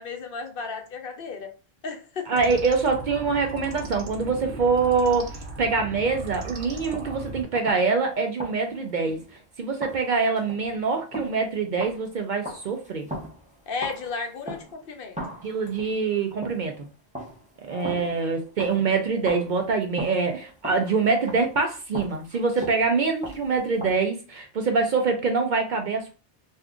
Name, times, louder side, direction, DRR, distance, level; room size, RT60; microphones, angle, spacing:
voice 1, 0.0-1.5 1.8-2.3 13.7-15.2 17.7-18.2, left 4 dB, 60° left, 4 dB, 0.8 m, -34 dB
voice 2, 2.3-9.2 9.6-13.1 15.4-16.9 17.6-26.1, right 4 dB, 55° right, 4 dB, 0.6 m, -25 dB
sound 1, 2.3-7.4, right 2 dB, 80° right, 1.0 m, -37 dB
sound 2, 6.3-7.2 7.5-8.1 8.4-9.4 9.8-14.9 15.1-16.8 17.1-19.0 19.2-24.0, right 1 dB, 10° right, 0.6 m, -39 dB
2.6 x 2.4 x 3.5 m, 0.33 s
omnidirectional pair, 1.1 m